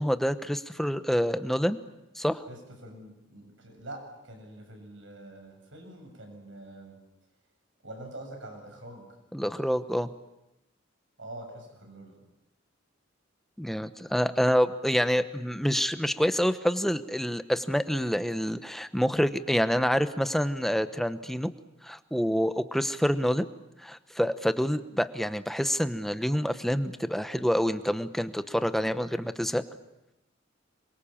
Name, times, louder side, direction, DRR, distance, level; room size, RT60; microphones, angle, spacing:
voice 1, 0.0-1.8 2.2-2.4 9.3-10.1 13.6-21.5 21.8-23.5 23.8-29.6, equal, ahead, 11 dB, 1.0 m, -27 dB
voice 2, 2.5-4.0 4.2-7.0 7.8-9.1 11.2-12.1, right 1 dB, 75° right, 3 dB, 7.6 m, -45 dB
27.0 x 23.5 x 7.4 m, 0.90 s
head